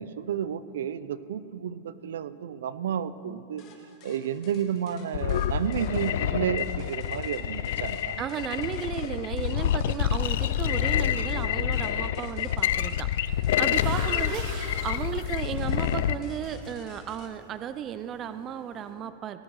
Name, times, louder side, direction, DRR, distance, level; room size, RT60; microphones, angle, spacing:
voice 1, 0.0-3.6 4.0-8.2, right 9 dB, 85° right, 15 dB, 0.5 m, -31 dB
sound 1, 3.6-17.3, left 5 dB, 30° left, 1.5 m, -52 dB
sound 2, 5.1-16.2, left 10 dB, 65° left, 0.4 m, -28 dB
voice 2, 8.2-19.4, right 9 dB, 20° right, 12 dB, 0.4 m, -34 dB
sound 3, 13.3-18.9, right 1 dB, 40° right, 3.7 m, -43 dB
17.5 x 7.5 x 6.4 m, 3.0 s
supercardioid pair, 165°, 0 cm